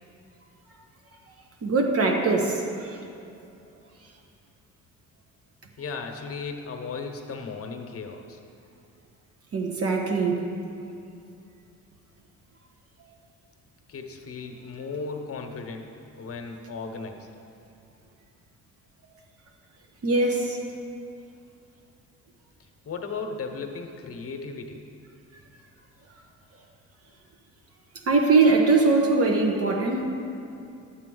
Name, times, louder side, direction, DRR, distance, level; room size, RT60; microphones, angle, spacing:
voice 1, 1.6-3.0 9.5-10.4 20.0-20.6 28.1-30.0, right 3 dB, 50° right, 2 dB, 1.2 m, -22 dB
voice 2, 5.8-8.4 13.9-17.2 22.8-24.8, left 4 dB, 50° left, 4 dB, 1.0 m, -36 dB
10.5 x 8.3 x 3.9 m, 2.6 s
cardioid pair, 90°, 30 cm